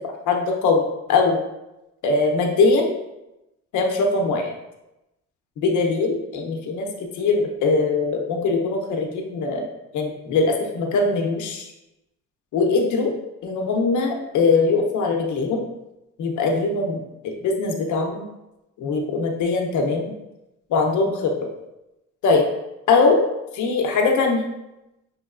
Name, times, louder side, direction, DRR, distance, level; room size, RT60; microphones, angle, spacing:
voice 1, 0.3-1.4 2.0-3.0 3.7-4.5 5.6-6.9 7.1-9.7 9.9-11.7 12.5-13.1 13.4-15.6 16.2-18.2 18.8-20.1 20.7-21.5 22.2-22.5 22.9-23.2 23.5-24.4, left 3 dB, 75° left, 2 dB, 0.8 m, -21 dB
5.6 x 3.1 x 2.5 m, 0.94 s
cardioid pair, 90°, 30 cm